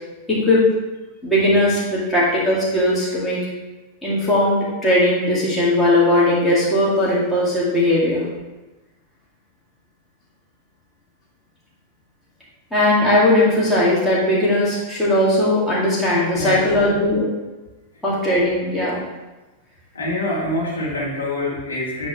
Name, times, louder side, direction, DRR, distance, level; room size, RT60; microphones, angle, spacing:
voice 1, 0.3-0.6 1.2-3.4 4.0-8.2 12.7-17.3 18.0-19.0, left 1 dB, 10° left, -8 dB, 2.3 m, -18 dB
voice 2, 16.3-16.6 19.9-22.1, left 1 dB, 75° left, -7 dB, 2.1 m, -25 dB
9.7 x 3.5 x 3.5 m, 1.1 s
figure-of-eight pair, 90°, 0 cm